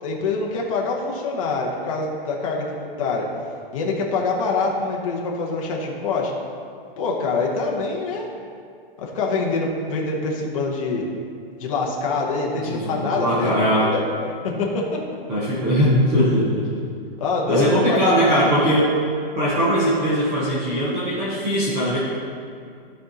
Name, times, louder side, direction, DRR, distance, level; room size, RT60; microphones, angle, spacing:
voice 1, 0.0-3.3 3.7-6.3 7.0-8.3 9.0-11.0 11.6-13.5 13.8-15.0 17.2-18.5, left 3 dB, 35° left, -2 dB, 0.9 m, -25 dB
voice 2, 12.7-13.9 15.3-16.7 17.5-18.9 19.4-22.0, equal, 10° right, -9 dB, 0.6 m, -20 dB
12.5 x 4.2 x 3.9 m, 2.3 s
hypercardioid pair, 175°, 30 cm